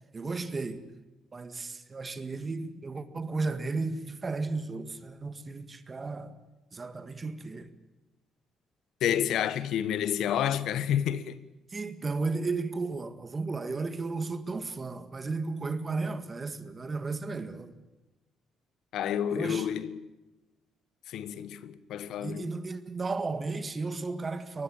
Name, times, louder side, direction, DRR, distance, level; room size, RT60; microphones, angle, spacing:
voice 1, 0.1-0.9 1.3-6.3 6.7-7.7 11.7-17.7 19.3-19.7 22.2-24.6, right 3 dB, 25° right, 1.8 m, -34 dB
voice 2, 9.0-11.4 18.9-20.1 21.1-22.5, left 10 dB, 75° left, 1.3 m, -29 dB
24.0 x 19.5 x 8.9 m
cardioid pair, 120°, 0 cm